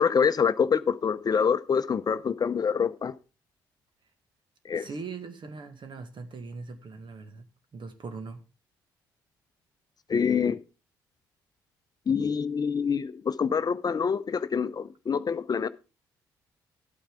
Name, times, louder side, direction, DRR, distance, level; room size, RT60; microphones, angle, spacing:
voice 1, 0.0-3.1 4.6-4.9 10.1-10.6 12.1-15.7, left 6 dB, 40° left, 0.7 m, -26 dB
voice 2, 4.8-8.4, right 4 dB, 50° right, 1.8 m, -41 dB
12.0 x 8.8 x 3.7 m
hypercardioid pair, 45°, 10 cm